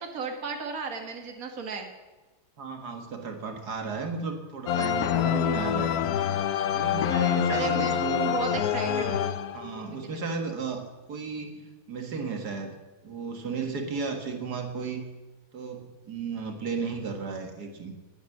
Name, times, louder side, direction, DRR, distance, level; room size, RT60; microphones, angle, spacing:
voice 1, 0.0-1.9 7.5-8.0 8.3-9.3 9.7-10.2, right 5 dB, 60° right, 4 dB, 2.1 m, -35 dB
voice 2, 2.6-6.1 6.7-8.4 8.8-9.2 9.5-12.8 13.0-15.1 15.5-18.0, right 5 dB, 75° right, 5 dB, 2.2 m, -34 dB
sound 1, 4.7-9.9, left 9 dB, 70° left, 1.2 m, -26 dB
18.5 x 9.4 x 7.2 m, 1.2 s
omnidirectional pair, 1.7 m